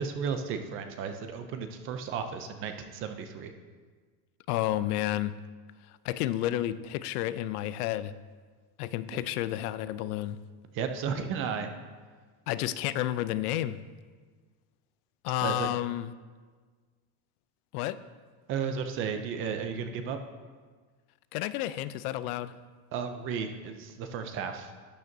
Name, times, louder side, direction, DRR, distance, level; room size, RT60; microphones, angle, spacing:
voice 1, 0.0-3.5 9.1-9.2 10.7-11.7 15.4-15.7 18.5-20.2 22.9-24.7, right 6 dB, 30° right, 7 dB, 0.4 m, -34 dB
voice 2, 4.5-5.4 6.0-8.1 8.8-10.4 12.5-13.8 15.2-16.1 17.7-18.0 21.3-22.5, left 14 dB, 75° left, 15 dB, 0.6 m, -31 dB
11.5 x 9.3 x 2.7 m, 1.5 s
supercardioid pair, 155°, 46 cm